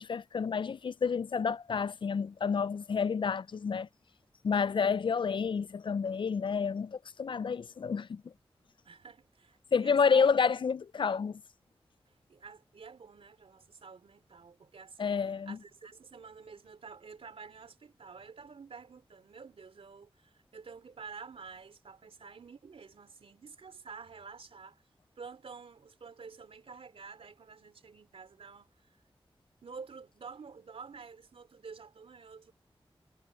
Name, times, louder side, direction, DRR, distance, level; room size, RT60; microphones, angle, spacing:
voice 1, 0.0-3.9 4.4-8.2 9.7-11.4 15.0-15.6, left 6 dB, 60° left, 0.4 m, -29 dB
voice 2, 8.9-10.3 12.1-24.8 25.2-29.0 29.6-32.5, right 5 dB, 80° right, 3.6 m, -50 dB
wide cardioid pair, 85°, 10 cm